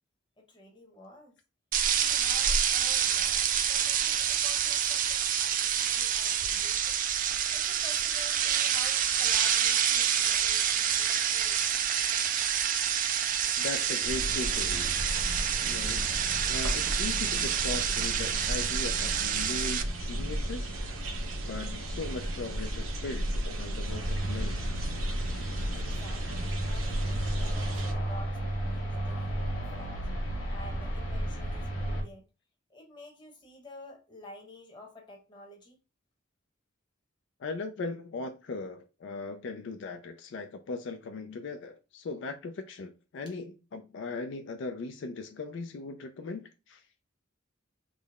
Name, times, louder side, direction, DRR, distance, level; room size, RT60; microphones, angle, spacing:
voice 1, 0.4-1.4 1.9-7.0 7.5-11.6 25.7-30.1 30.5-32.2 32.7-35.8, left 1 dB, 25° left, 1.0 m, -50 dB
sound 1, 1.7-19.8, right 9 dB, 40° right, 0.3 m, -28 dB
voice 2, 13.6-15.1 15.6-16.2 16.5-20.8 21.4-24.6 37.4-46.9, left 3 dB, 60° left, 0.4 m, -39 dB
sound 2, 14.0-27.9, right 1 dB, 90° right, 0.7 m, -34 dB
sound 3, 23.9-32.0, right 1 dB, 85° left, 1.3 m, -33 dB
3.7 x 2.0 x 3.4 m
head